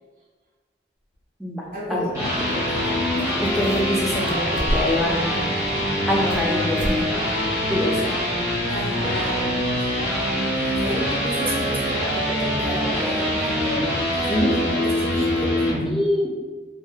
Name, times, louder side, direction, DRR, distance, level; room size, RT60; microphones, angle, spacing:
sound 1, 1.1-1.2 2.8-2.9 3.2-4.0 4.3-5.1 5.6-6.5 6.8-7.0 7.3-7.4 8.0-8.1, equal, 85° left, 0.5 m, -30 dB
voice 1, 1.7-2.8 8.7-10.2 10.5-13.9 14.2-15.6, right 1 dB, 50° right, -6 dB, 0.7 m, -32 dB
sound 2, 1.9-15.8, equal, 20° right, 0.9 m, -24 dB
voice 2, 3.4-5.5 6.1-7.1 7.7-8.1 14.3-14.6 15.8-16.3, left 1 dB, ahead, -4 dB, 0.3 m, -24 dB
2.2 x 2.0 x 2.7 m, 1.4 s
head